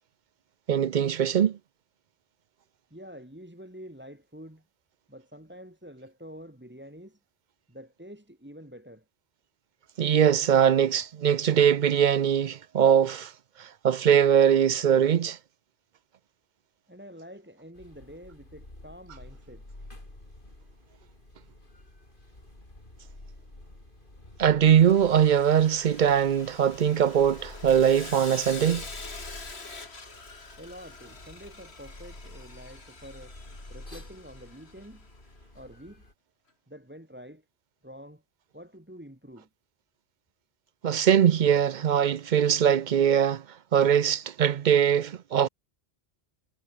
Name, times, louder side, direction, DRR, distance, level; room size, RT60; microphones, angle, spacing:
voice 1, 0.7-1.6 10.0-13.3 13.6-15.4 24.4-28.8 40.8-43.4 43.7-45.5, right 8 dB, 55° right, 0.6 m, -21 dB
voice 2, 2.9-4.6 5.1-7.2 7.7-9.0 16.9-19.7 30.6-33.4 33.7-35.1 35.5-36.0 36.7-37.4 37.8-38.2 38.5-39.5, equal, 10° right, 2.3 m, -47 dB
sound 1, 17.7-36.1, left 1 dB, 50° left, 5.2 m, -49 dB
Sawing, 24.8-35.1, left 3 dB, 85° left, 2.9 m, -45 dB
omnidirectional pair, 1.1 m